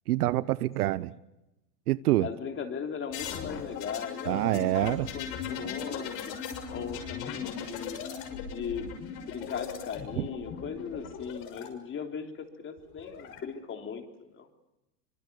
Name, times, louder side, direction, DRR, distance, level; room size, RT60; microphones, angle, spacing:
voice 1, 0.1-1.1 1.9-2.3 4.3-5.1 10.2-10.3, right 16 dB, 70° right, 0.9 m, -26 dB
voice 2, 2.2-6.3 6.7-8.0 8.5-8.9 9.3-14.5, left 6 dB, 25° left, 3.5 m, -38 dB
sound 1, 3.1-11.7 12.8-13.4, left 7 dB, 50° left, 6.6 m, -38 dB
25.5 x 23.5 x 6.9 m
hypercardioid pair, 120°, 47 cm